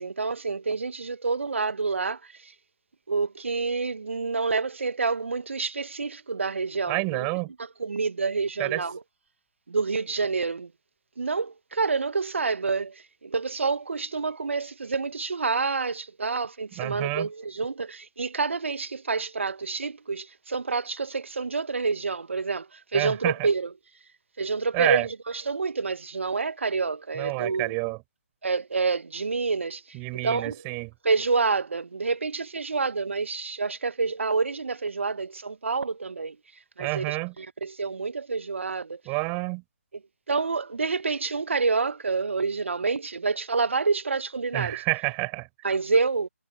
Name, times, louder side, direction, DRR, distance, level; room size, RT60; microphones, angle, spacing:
voice 1, 0.0-2.2 3.1-7.3 7.8-9.0 9.7-10.7 11.2-12.9 13.2-22.7 22.9-23.7 24.4-25.1 25.3-27.7 28.4-29.8 30.1-30.6 31.0-36.4 36.8-39.0 40.3-44.8 45.6-46.3, right 4 dB, 60° right, 1.7 m, -28 dB
voice 2, 6.9-7.5 8.6-8.8 16.8-17.3 22.9-23.5 24.7-25.1 27.1-28.0 29.9-30.9 36.8-37.3 39.0-39.6 44.5-45.5, right 35 dB, 20° right, 6.6 m, -28 dB
figure-of-eight pair, 150°, 8 cm